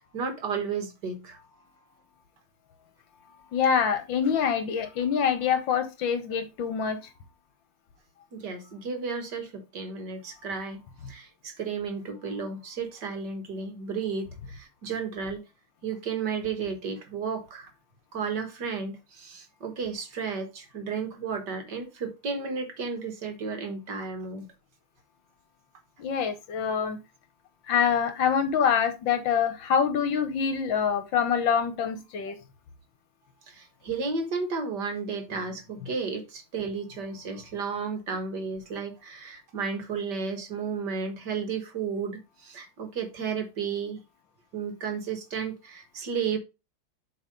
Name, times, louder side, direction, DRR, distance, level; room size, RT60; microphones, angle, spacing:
voice 1, 0.0-1.4 8.3-10.8 11.1-15.4 15.8-17.7 18.1-24.5 33.5-44.0 44.5-46.4, right 5 dB, 55° right, 1.8 m, -33 dB
voice 2, 3.5-7.0 26.0-27.0 27.7-32.4, left 7 dB, 65° left, 1.5 m, -25 dB
7.4 x 3.8 x 5.1 m
omnidirectional pair, 2.4 m